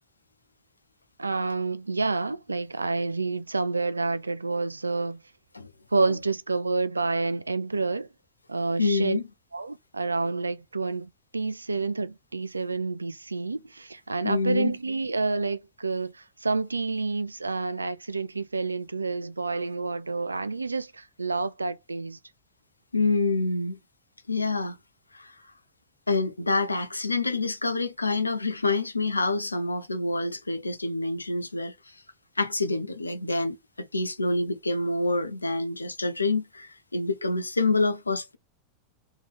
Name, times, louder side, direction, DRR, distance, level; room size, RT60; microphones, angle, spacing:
voice 1, 1.2-5.2 5.9-8.1 8.5-9.2 9.5-22.2, right 3 dB, 80° right, 0.4 m, -29 dB
voice 2, 8.8-9.2 14.2-14.7 22.9-23.8 24.3-24.8 25.1-25.3 26.1-31.7 32.4-38.4, left 3 dB, 80° left, 0.6 m, -27 dB
3.6 x 3.4 x 3.3 m
figure-of-eight pair, 90°, 0 cm